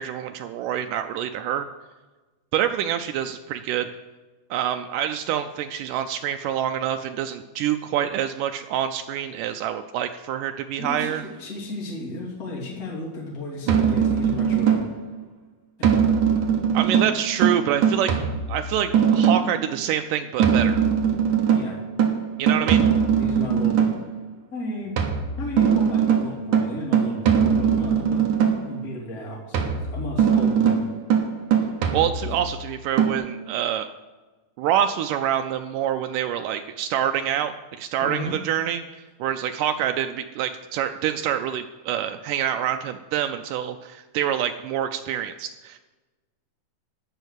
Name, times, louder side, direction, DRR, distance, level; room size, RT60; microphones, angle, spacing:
voice 1, 0.0-1.7 2.5-3.9 4.5-11.2 16.7-18.1 18.5-20.8 22.4-22.8 31.9-33.9 34.6-45.8, right 10 dB, 85° right, 7 dB, 1.9 m, -26 dB
voice 2, 10.8-14.8 15.8-15.9 18.0-18.2 21.5-21.8 22.6-23.8 24.5-25.0 25.4-28.3 28.6-30.8 38.0-38.4, left 1 dB, 25° left, -3 dB, 2.8 m, -34 dB
sound 1, 13.7-15.1 15.8-19.6 20.4-24.1 25.0-28.8 29.5-32.5 33.0-33.1, right 7 dB, 65° right, 2.5 m, -21 dB
13.5 x 5.6 x 8.1 m, 1.2 s
omnidirectional pair, 4.3 m